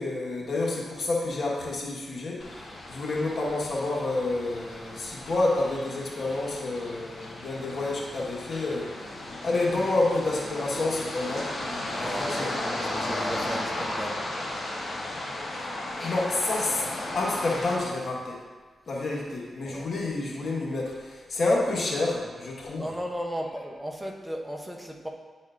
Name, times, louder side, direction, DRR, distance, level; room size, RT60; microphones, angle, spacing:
voice 1, 0.0-2.5 2.9-8.9 9.4-11.5 12.0-12.6 16.0-16.9 17.1-18.4 18.9-22.9, left 2 dB, 65° left, -3 dB, 1.4 m, -29 dB
sound 1, 2.4-17.8, left 1 dB, 45° left, 1.5 m, -35 dB
voice 2, 12.0-14.2 19.6-19.9 22.8-25.1, equal, 10° right, 1 dB, 0.7 m, -35 dB
9.8 x 4.2 x 2.5 m, 1.4 s
cardioid pair, 60°, 0 cm